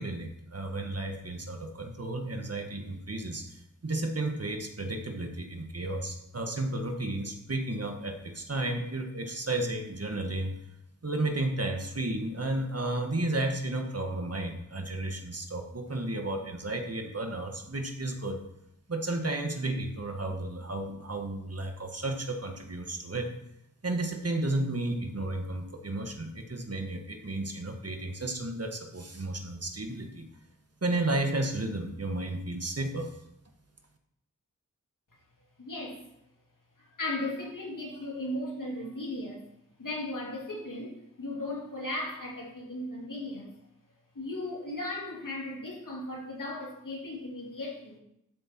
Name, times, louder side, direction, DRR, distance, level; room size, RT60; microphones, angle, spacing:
voice 1, 0.0-10.5 11.0-18.4 18.9-23.3 23.8-30.2 30.8-33.1, right 2 dB, 50° right, 4 dB, 1.6 m, -33 dB
voice 2, 35.6-36.0 36.8-39.5 39.8-43.5 44.1-48.0, left 1 dB, 80° left, -2 dB, 3.0 m, -36 dB
12.0 x 6.6 x 4.5 m, 0.79 s
wide cardioid pair, 60°, 31 cm